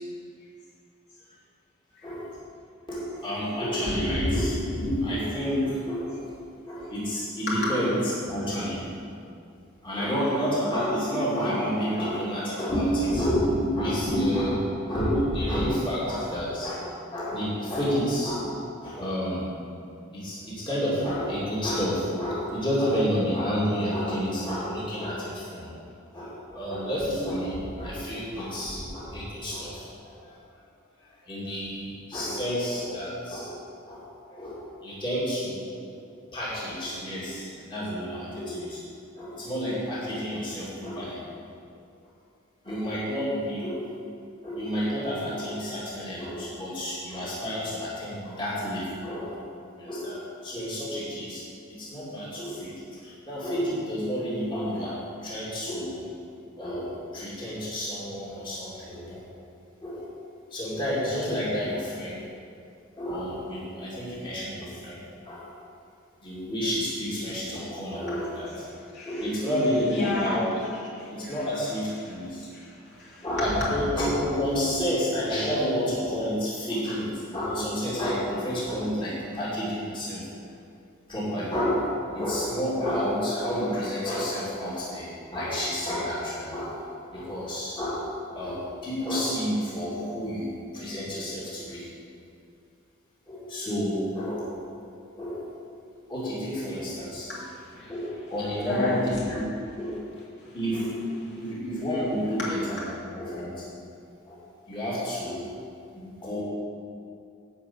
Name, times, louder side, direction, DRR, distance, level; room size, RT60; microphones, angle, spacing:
voice 1, 2.9-6.3 6.7-8.0 8.3-8.8 9.8-18.5 18.8-19.4 20.1-25.7 26.1-30.1 31.3-33.5 33.9-35.7 35.9-36.0 36.3-38.8 39.2-41.2 42.6-43.9 44.4-49.4 49.8-51.4 51.7-56.0 56.6-59.2 59.8-60.1 60.5-62.3 63.0-65.0 65.3-65.5 66.2-68.5 69.1-70.6 71.1-72.5 73.2-80.2 81.1-81.9 82.1-86.8 87.1-91.9 93.3-94.5 95.2-95.4 96.1-97.3 97.9-99.4 99.8-100.0 100.5-101.1 101.4-103.5 104.3-104.4 104.7-105.5 105.9-106.4, equal, 25° left, -8 dB, 2.5 m, -29 dB
voice 2, 68.9-69.2 69.9-70.4 71.0-71.4 72.0-72.1 72.5-73.3 97.3-97.9 98.6-99.0 100.4-100.6 102.4-102.5, left 2 dB, 60° left, -7 dB, 3.0 m, -34 dB
11.5 x 5.1 x 8.0 m, 2.5 s
head